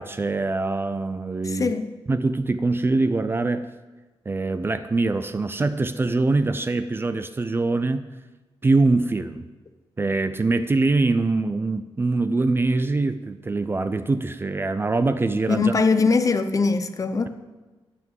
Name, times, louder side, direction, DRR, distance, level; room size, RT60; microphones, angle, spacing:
voice 1, 0.0-1.7 2.1-3.7 4.3-8.1 8.6-9.5 10.0-15.7, right 3 dB, 25° right, 11 dB, 0.5 m, -23 dB
voice 2, 1.4-1.9 15.5-17.3, left 4 dB, 35° left, 9 dB, 0.8 m, -21 dB
12.5 x 5.9 x 9.1 m, 1.2 s
wide cardioid pair, 165°, 10 cm